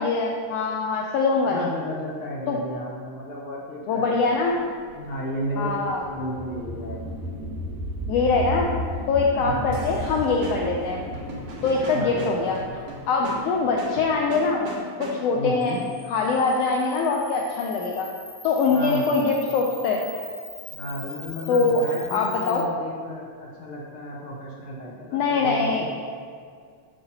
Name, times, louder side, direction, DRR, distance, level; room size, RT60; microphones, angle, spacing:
voice 1, 0.0-1.7 2.5-2.6 3.9-4.6 5.6-6.0 8.1-8.7 9.1-11.1 11.6-12.6 13.1-14.6 15.0-15.8 16.1-18.1 18.4-20.0 21.5-21.8 22.1-22.6 25.1-25.8, left 4 dB, 85° left, 0 dB, 1.4 m, -23 dB
voice 2, 1.4-4.5 4.9-7.1 9.4-9.8 11.9-12.4 15.3-15.9 18.7-19.2 20.7-25.8, equal, 65° left, -4 dB, 1.3 m, -33 dB
sound 1, 4.5-13.5, left 1 dB, 90° right, 2.7 m, -34 dB
sound 2, 9.7-15.5, right 1 dB, 65° right, 1.7 m, -38 dB
Camera, 15.6-22.6, left 2 dB, 40° left, 0.9 m, -42 dB
7.9 x 6.7 x 2.8 m, 2.1 s
omnidirectional pair, 3.4 m